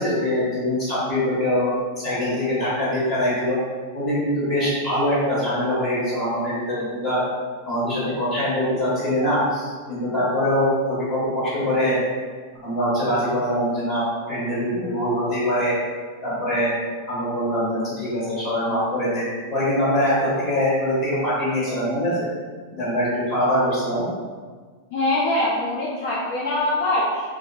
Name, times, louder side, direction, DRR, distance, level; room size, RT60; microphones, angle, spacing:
voice 1, 0.0-3.6 3.9-7.2 7.7-12.0 12.6-15.8 16.2-16.7 17.1-22.3 22.7-24.0, equal, 25° left, -8 dB, 1.4 m, -23 dB
voice 2, 24.9-27.3, left 1 dB, 60° left, -5 dB, 0.6 m, -23 dB
3.5 x 2.8 x 2.3 m, 1.5 s
supercardioid pair, 165°, 0 cm